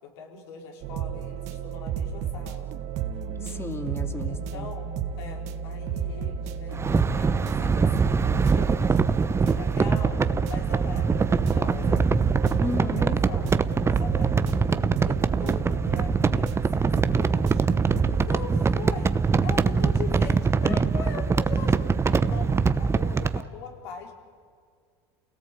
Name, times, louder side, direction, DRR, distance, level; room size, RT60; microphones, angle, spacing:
voice 1, 0.0-2.7 4.3-4.9 5.2-9.0 9.4-10.2 10.5-13.5 13.8-14.7 15.0-17.7 18.2-24.1, left 5 dB, 75° left, 2 dB, 4.6 m, -41 dB
sound 1, 0.8-18.3, right 8 dB, 55° right, 1.9 m, -32 dB
voice 2, 3.4-4.7 12.6-13.2 20.7-20.8, left 2 dB, 20° left, 5 dB, 2.8 m, -33 dB
sound 2, 6.7-23.4, right 5 dB, 20° right, 0.9 m, -23 dB
28.5 x 18.0 x 8.5 m, 2.1 s
hypercardioid pair, 90°, 14 cm